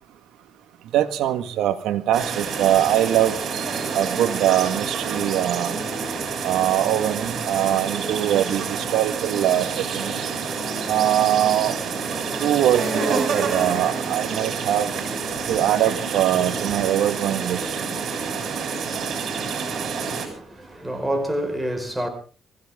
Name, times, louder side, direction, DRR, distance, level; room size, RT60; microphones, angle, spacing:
voice 1, 0.9-3.4 3.9-5.8 6.4-10.3 10.9-11.7 12.4-14.9 15.5-17.7, right 12 dB, 85° right, 1.5 m, -22 dB
sound 1, 2.1-20.3, right 5 dB, 60° right, 7.3 m, -28 dB
voice 2, 20.0-22.1, equal, 5° right, 4.9 m, -28 dB
24.5 x 16.0 x 3.6 m
cardioid pair, 90°, 0 cm